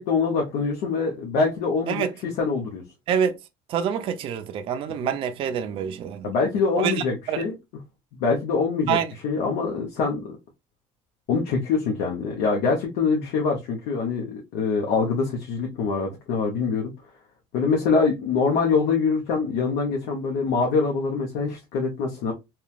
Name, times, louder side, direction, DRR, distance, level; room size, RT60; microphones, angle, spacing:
voice 1, 0.0-2.8 5.0-5.1 6.2-7.5 8.2-9.0 9.2-10.4 11.3-16.9 17.5-22.3, left 4 dB, 80° left, 0.8 m, -24 dB
voice 2, 3.7-6.3 6.8-7.5 8.9-9.1, right 8 dB, 40° right, 0.4 m, -26 dB
2.9 x 2.3 x 2.4 m
cardioid pair, 145°, 14 cm